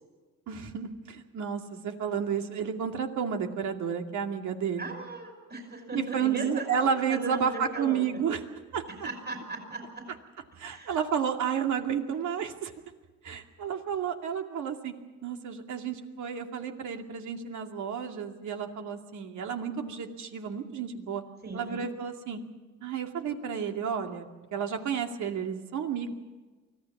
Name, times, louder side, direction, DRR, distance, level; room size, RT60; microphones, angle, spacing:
voice 1, 0.5-4.9 5.9-8.4 8.7-8.8 10.6-12.7 13.2-14.9 15.2-21.2 21.5-22.4 22.8-24.3 24.5-26.1, right 7 dB, 75° right, 3 dB, 2.5 m, -31 dB
voice 2, 4.8-8.2 9.0-10.1 10.7-11.0 21.4-21.9, right 2 dB, 35° right, 5 dB, 5.5 m, -38 dB
24.5 x 16.0 x 7.3 m, 1.3 s
cardioid pair, 90°, 30 cm